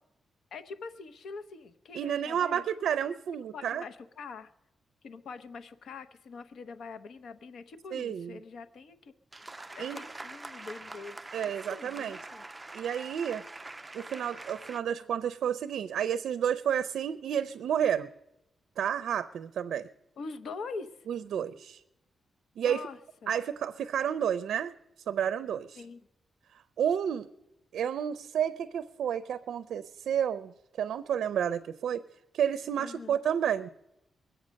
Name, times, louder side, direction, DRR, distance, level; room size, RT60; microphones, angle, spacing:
voice 1, 0.5-2.6 3.5-4.5 5.0-9.1 9.8-11.2 11.7-12.4 20.2-21.1 22.6-23.3 25.7-26.0 32.8-33.2, left 4 dB, 70° left, 10 dB, 0.8 m, -44 dB
voice 2, 1.9-3.8 7.9-8.4 9.8-10.0 11.3-12.2 12.7-13.4 13.9-18.1 18.8-19.9 21.1-21.8 22.6-22.9 23.3-24.7 25.1-25.8 26.5-27.3 27.7-32.0 32.3-33.7, right 9 dB, 80° right, 13 dB, 0.4 m, -31 dB
sound 1, 9.3-14.8, right 2 dB, 15° right, 0.4 m, -45 dB
22.0 x 8.0 x 6.3 m, 0.90 s
wide cardioid pair, 150°, 0 cm